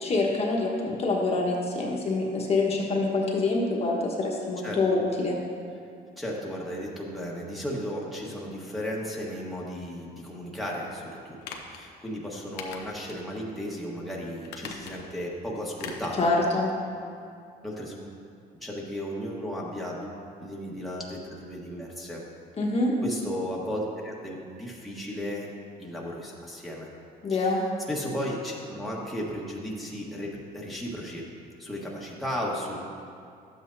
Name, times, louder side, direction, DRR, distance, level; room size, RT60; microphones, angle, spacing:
voice 1, 0.0-5.4 16.2-16.7 22.6-22.9 27.2-27.6, left 3 dB, 35° left, -2 dB, 1.3 m, -26 dB
voice 2, 6.2-16.2 17.6-18.0 18.6-20.1 20.4-22.2 23.0-25.5 25.8-26.9 27.3-27.5 27.9-31.3 31.6-32.8, equal, ahead, -4 dB, 1.4 m, -35 dB
sound 1, 11.4-11.8 12.6-13.2 13.6-13.7 14.4-15.2 15.8-16.2 16.5-16.6, left 6 dB, 85° left, 0.9 m, -41 dB
11.5 x 7.8 x 2.7 m, 2.4 s
cardioid pair, 110°, 17 cm